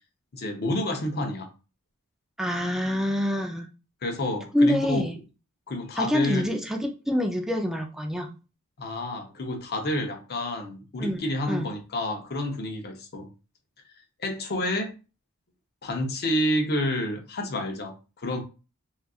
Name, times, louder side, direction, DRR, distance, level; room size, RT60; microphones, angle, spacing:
voice 1, 0.3-1.5 4.0-5.0 5.7-6.4 8.8-13.3 14.2-14.9 15.8-18.4, left 1 dB, 45° left, 0.7 m, -29 dB
voice 2, 2.4-3.7 4.5-5.1 6.0-8.3 11.0-11.7, left 1 dB, ahead, 0.4 m, -26 dB
4.0 x 2.4 x 2.3 m
head